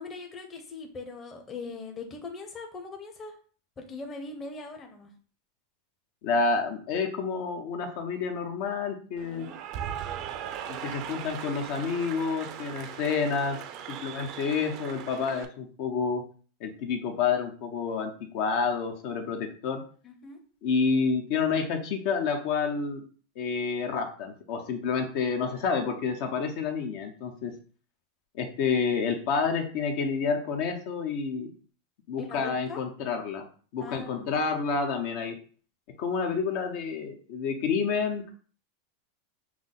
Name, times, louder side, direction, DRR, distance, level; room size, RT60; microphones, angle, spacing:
voice 1, 0.0-3.3 3.8-5.1 9.2-9.6 20.0-20.4 32.2-32.8 33.8-34.3, left 4 dB, 20° left, 3 dB, 0.9 m, -41 dB
voice 2, 6.2-9.5 10.7-13.6 13.9-16.2 16.6-19.8 20.6-23.0 23.4-27.5 28.3-31.5 32.1-33.5 33.7-35.4 36.0-38.3, left 5 dB, 55° left, 4 dB, 0.8 m, -29 dB
Cheering / Applause, 9.2-15.5, right 9 dB, 45° right, 0.5 m, -39 dB
6.0 x 2.1 x 3.8 m, 0.41 s
supercardioid pair, 140°, 0 cm